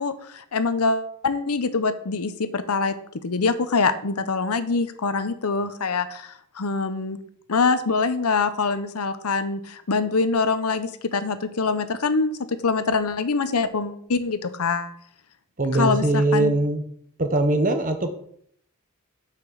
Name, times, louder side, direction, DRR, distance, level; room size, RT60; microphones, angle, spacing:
voice 1, 0.0-2.9 3.2-7.2 7.5-14.9 15.7-16.5, left 4 dB, 85° left, 11 dB, 0.8 m, -24 dB
voice 2, 15.6-16.8 17.2-18.1, right 2 dB, 35° right, 7 dB, 1.0 m, -21 dB
6.0 x 5.8 x 6.7 m, 0.66 s
head